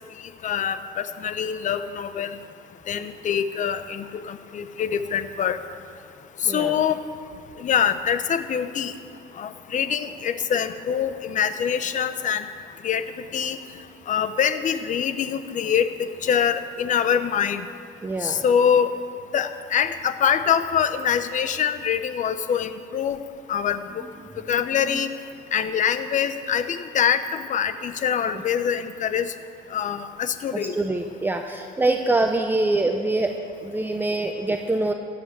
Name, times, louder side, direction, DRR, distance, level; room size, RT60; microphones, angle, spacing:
voice 1, 0.4-2.4 2.9-5.6 6.4-7.0 7.6-8.9 9.4-12.4 12.8-13.0 13.3-13.6 14.1-15.9 16.2-17.6 18.2-18.9 19.3-23.2 23.5-23.8 24.5-25.1 25.5-29.3 29.7-30.8, left 8 dB, 45° left, 11 dB, 0.9 m, -24 dB
voice 2, 6.4-6.8 18.0-18.4 24.0-24.5 24.8-24.9 28.2-28.4 30.5-33.3 33.6-34.9, right 2 dB, 10° right, 4 dB, 0.7 m, -25 dB
15.0 x 8.7 x 8.2 m, 2.3 s
cardioid pair, 110°, 17 cm